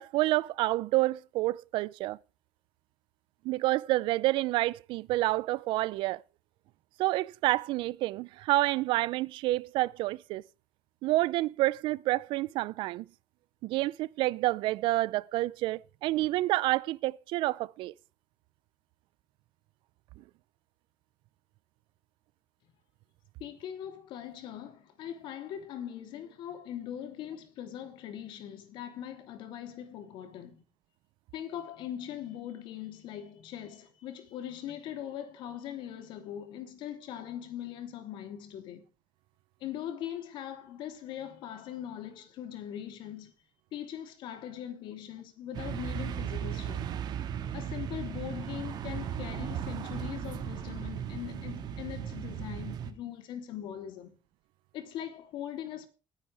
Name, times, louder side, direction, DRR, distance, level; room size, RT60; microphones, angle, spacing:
voice 1, 0.0-2.2 3.4-6.2 7.0-10.4 11.0-13.1 13.6-17.9, right 18 dB, 80° right, 0.6 m, -28 dB
voice 2, 23.4-30.6 31.3-38.8 39.6-43.3 43.7-46.9 47.5-54.2 54.7-55.9, left 10 dB, 70° left, 3.1 m, -41 dB
sound 1, 45.5-52.9, right 9 dB, 55° right, 1.9 m, -36 dB
21.0 x 10.0 x 3.4 m
cardioid pair, 145°, 8 cm